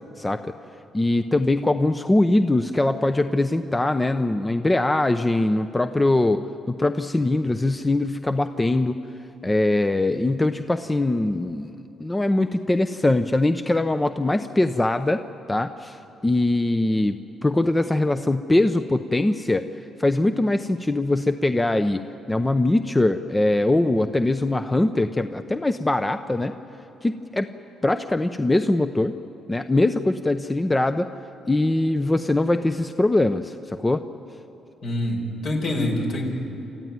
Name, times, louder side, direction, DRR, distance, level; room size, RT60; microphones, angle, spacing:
voice 1, 0.2-0.5 0.9-6.4 6.7-9.0 9.4-15.2 15.5-19.7 20.0-26.5 27.0-27.5 27.8-29.1 29.5-31.1 31.5-34.0, left 2 dB, 15° left, 9 dB, 0.7 m, -22 dB
voice 2, 34.8-36.3, left 1 dB, 65° left, 2 dB, 4.6 m, -25 dB
28.0 x 14.0 x 9.6 m, 2.8 s
cardioid pair, 90°, 0 cm